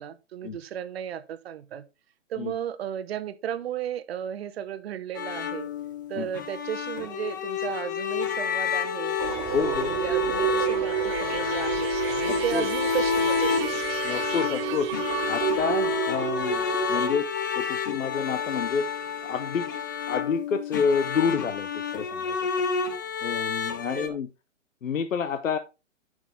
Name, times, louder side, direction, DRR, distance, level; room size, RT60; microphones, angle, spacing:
voice 1, 0.0-1.8 2.3-5.7 6.1-9.2 9.6-13.7 23.8-24.2, right 10 dB, 50° right, 1.0 m, -34 dB
sound 1, 5.1-24.1, left 6 dB, 15° left, 0.3 m, -29 dB
sound 2, 9.2-17.1, right 10 dB, 30° right, 1.7 m, -30 dB
voice 2, 9.5-9.9 12.3-12.7 14.0-14.9 15.3-16.6 16.9-17.3 17.6-18.8 19.2-19.7 20.1-22.4 23.2-24.3 24.8-25.6, left 6 dB, 80° left, 0.8 m, -28 dB
8.6 x 6.1 x 3.6 m
hypercardioid pair, 130°, 38 cm